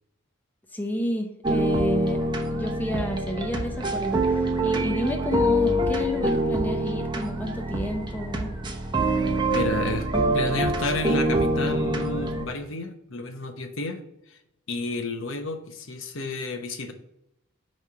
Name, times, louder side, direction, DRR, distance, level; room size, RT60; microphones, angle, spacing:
voice 1, 0.7-2.2 2.5-8.5, equal, 10° left, 3 dB, 0.7 m, -30 dB
sound 1, 1.4-12.4, right 1 dB, 20° right, 0.8 m, -25 dB
voice 2, 9.4-10.1 10.3-14.4 14.7-16.9, left 2 dB, 65° left, 6 dB, 0.9 m, -31 dB
8.9 x 3.2 x 5.6 m, 0.82 s
head